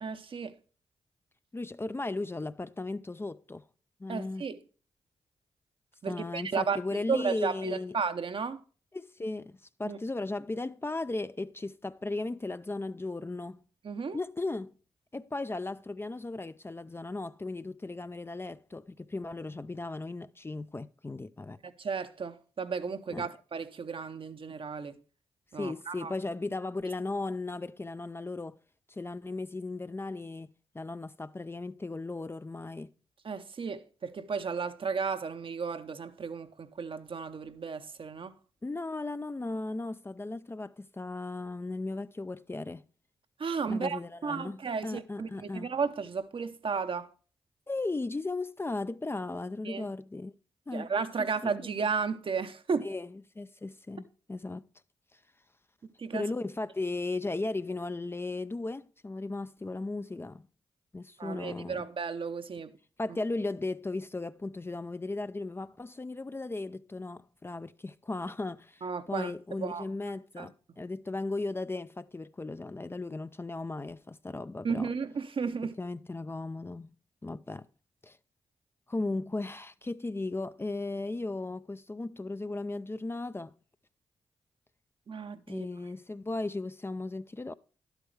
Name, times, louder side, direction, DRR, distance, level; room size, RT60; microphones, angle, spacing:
voice 1, 0.0-0.6 4.1-4.6 6.0-8.6 9.8-10.0 13.8-14.2 21.8-25.0 25.5-26.1 33.2-38.3 43.4-47.1 49.6-49.9 50.7-52.9 55.8-56.3 61.2-62.7 68.8-69.3 69.6-69.8 70.4-70.5 74.6-75.8 85.1-85.7, right 5 dB, 55° right, 0.8 m, -34 dB
voice 2, 1.5-3.6 4.0-4.4 6.1-8.0 8.9-13.6 14.1-14.7 15.1-21.6 23.1-23.3 25.5-28.6 28.9-30.5 30.7-32.9 38.6-42.8 43.7-45.7 47.7-50.3 50.7-50.9 51.2-51.5 52.8-54.6 56.1-60.5 60.9-61.9 63.0-74.9 75.8-76.9 77.2-77.7 78.0-78.2 78.9-83.5 85.5-87.5, left 2 dB, 20° left, 0.4 m, -36 dB
11.0 x 8.1 x 3.2 m
supercardioid pair, 40°, 11 cm